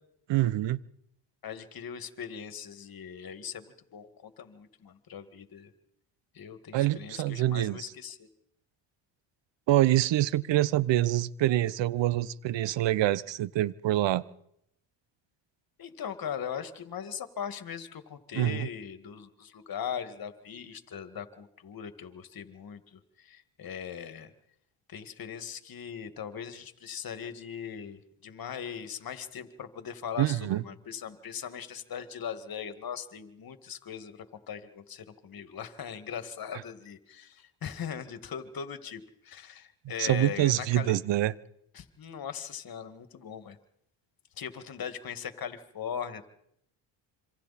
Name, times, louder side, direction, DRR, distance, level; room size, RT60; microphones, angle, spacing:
voice 1, 0.3-0.8 6.7-7.8 9.7-14.2 18.3-18.7 30.2-30.6 40.0-41.3, right 14 dB, 65° right, 1.0 m, -26 dB
voice 2, 1.4-5.7 6.3-8.3 15.8-24.3 24.9-41.0 41.7-43.6 44.4-46.3, left 8 dB, 50° left, 2.1 m, -40 dB
27.0 x 25.5 x 4.3 m
cardioid pair, 90°, 46 cm